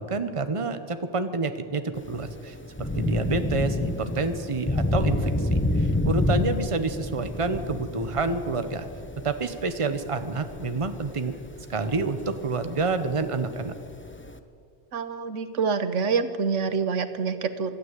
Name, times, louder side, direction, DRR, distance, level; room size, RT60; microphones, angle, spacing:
voice 1, 0.0-8.9 9.2-11.3 11.7-13.7, right 3 dB, 30° right, 9 dB, 1.1 m, -28 dB
Thunder / Rain, 1.9-14.4, left 2 dB, 10° left, 0.8 m, -29 dB
voice 2, 14.9-17.7, right 5 dB, 80° right, 11 dB, 1.4 m, -26 dB
25.5 x 13.0 x 8.3 m, 2.4 s
omnidirectional pair, 1.2 m